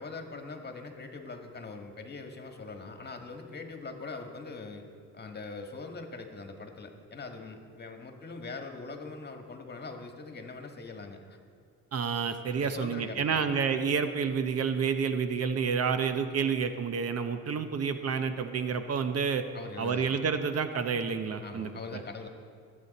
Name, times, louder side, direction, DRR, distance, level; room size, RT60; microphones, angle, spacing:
voice 1, 0.0-4.9 5.1-11.4 12.6-13.4 19.5-20.1 21.4-22.3, left 3 dB, 35° left, 4 dB, 1.6 m, -42 dB
voice 2, 11.9-19.5 19.8-22.0, right 6 dB, 55° right, 9 dB, 0.9 m, -29 dB
22.0 x 8.5 x 4.2 m, 2.3 s
cardioid pair, 90°, 30 cm